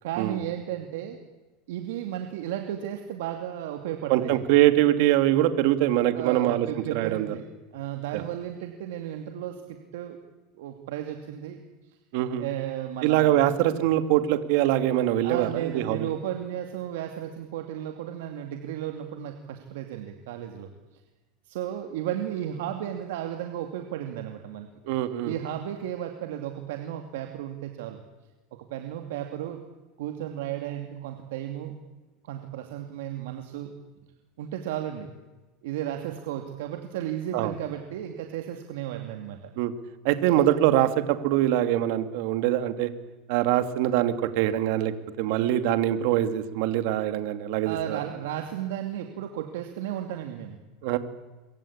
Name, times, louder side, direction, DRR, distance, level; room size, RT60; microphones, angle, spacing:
voice 1, 0.0-1.2 1.7-4.5 6.1-7.5 7.7-10.2 10.5-11.6 12.4-13.5 15.2-20.7 21.5-24.7 25.2-28.0 28.6-29.6 30.0-31.7 32.2-33.7 34.4-35.1 35.6-39.4 47.6-50.6, right 11 dB, 85° right, 5 dB, 2.5 m, -34 dB
voice 2, 4.1-6.7 6.9-7.3 8.1-8.2 12.1-12.4 13.0-16.1 24.9-25.3 37.3-37.5 39.6-39.7 40.0-42.9 43.3-44.9 45.2-48.0 50.8-51.0, right 13 dB, 65° right, 9 dB, 2.4 m, -23 dB
25.0 x 24.0 x 8.8 m, 1.1 s
supercardioid pair, 145°, 0 cm